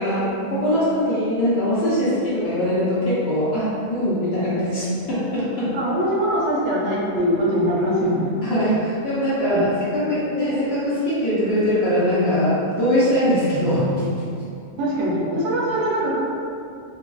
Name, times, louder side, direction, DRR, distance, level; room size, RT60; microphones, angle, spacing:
voice 1, 0.0-5.7 8.4-14.1, equal, 60° left, -10 dB, 0.7 m, -21 dB
voice 2, 5.7-8.3 9.5-9.7 14.8-16.2, equal, 65° right, -5 dB, 0.8 m, -22 dB
2.6 x 2.2 x 2.2 m, 2.4 s
omnidirectional pair, 1.4 m